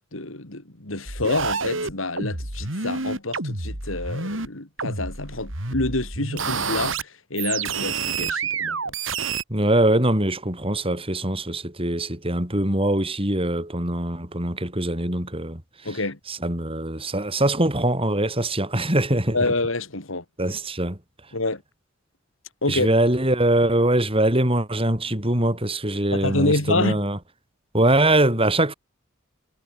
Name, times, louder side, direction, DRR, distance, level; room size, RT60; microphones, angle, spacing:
voice 1, 0.1-8.9 15.8-16.2 19.3-20.2 21.3-21.6 22.6-22.9 26.1-27.0, left 2 dB, 85° left, 3.9 m, -27 dB
sound 1, 1.1-4.5 4.8-7.0 7.4-9.4, right 4 dB, 75° right, 3.9 m, -28 dB
voice 2, 9.5-16.0 16.3-19.4 20.4-21.0 22.7-27.2 27.7-28.7, right 1 dB, 30° right, 6.1 m, -22 dB
head